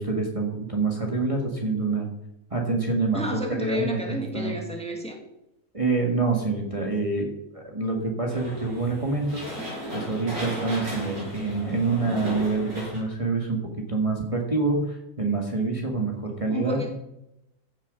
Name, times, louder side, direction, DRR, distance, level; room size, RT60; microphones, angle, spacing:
voice 1, 0.0-2.1 2.5-4.5 5.7-9.5 9.9-13.6 13.9-16.8, right 3 dB, 20° right, 0 dB, 1.9 m, -26 dB
voice 2, 3.1-5.2 16.5-16.9, equal, 5° left, 2 dB, 2.0 m, -31 dB
Cutting Carting the car wash, 8.3-13.0, left 1 dB, 75° right, 6.1 m, -35 dB
15.0 x 7.2 x 5.5 m, 0.86 s
omnidirectional pair, 1.5 m